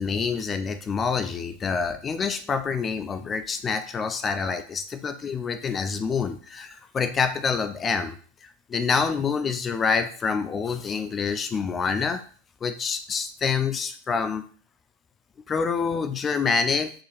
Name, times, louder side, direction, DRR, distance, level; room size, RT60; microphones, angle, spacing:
voice 1, 0.0-12.2 12.6-14.4 15.5-16.9, left 5 dB, 25° left, 9 dB, 0.4 m, -27 dB
4.9 x 3.0 x 2.4 m, 0.43 s
hypercardioid pair, 95°, 0 cm